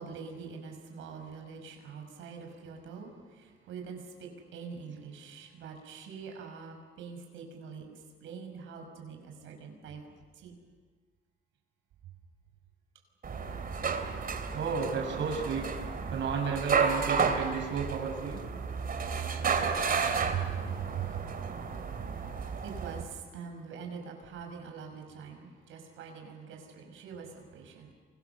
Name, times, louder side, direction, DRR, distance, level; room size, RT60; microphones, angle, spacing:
voice 1, 0.0-3.1 3.7-7.9 8.2-10.0 10.4-10.5 19.9-21.2 22.6-27.9, right 7 dB, 85° right, 3 dB, 5.4 m, -42 dB
sound 1, 13.2-23.0, right 5 dB, 45° right, 3.2 m, -32 dB
voice 2, 14.5-15.7 16.1-18.4, right 5 dB, 70° right, 2 dB, 5.8 m, -33 dB
29.0 x 24.5 x 7.0 m, 1.5 s
cardioid pair, 90°, 20 cm